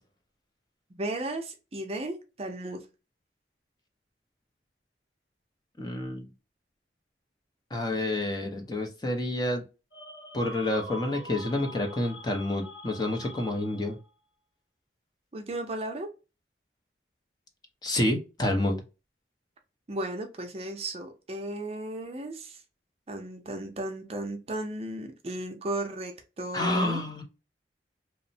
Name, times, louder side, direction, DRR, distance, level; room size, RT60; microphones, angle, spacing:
voice 1, 0.9-2.8 15.3-16.1 19.9-22.6 23.1-27.0, right 1 dB, 35° right, 0.5 m, -35 dB
voice 2, 5.8-6.3 7.7-9.6 10.3-14.0 17.8-18.8 26.5-27.2, left 1 dB, 25° left, 0.6 m, -29 dB
sound 1, 9.9-14.1, left 1 dB, 70° left, 1.1 m, -44 dB
2.9 x 2.0 x 2.6 m
head